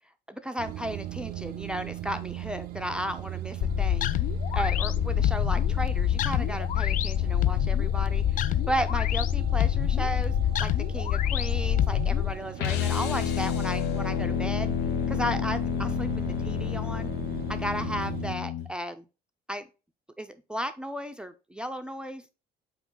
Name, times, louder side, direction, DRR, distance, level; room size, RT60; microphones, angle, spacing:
voice 1, 0.3-4.1 4.5-10.3 10.6-14.7 15.1-16.1 16.4-17.1 17.5-19.0 19.5-19.6 20.2-22.2, equal, 5° right, 9 dB, 0.4 m, -34 dB
sound 1, 0.6-18.4, right 14 dB, 65° right, 0.4 m, -39 dB
sound 2, 3.6-12.3, left 11 dB, 50° left, 0.4 m, -26 dB
sound 3, 12.6-18.7, left 8 dB, 85° left, 0.7 m, -29 dB
5.8 x 4.6 x 3.9 m, 0.31 s
cardioid pair, 110°, 17 cm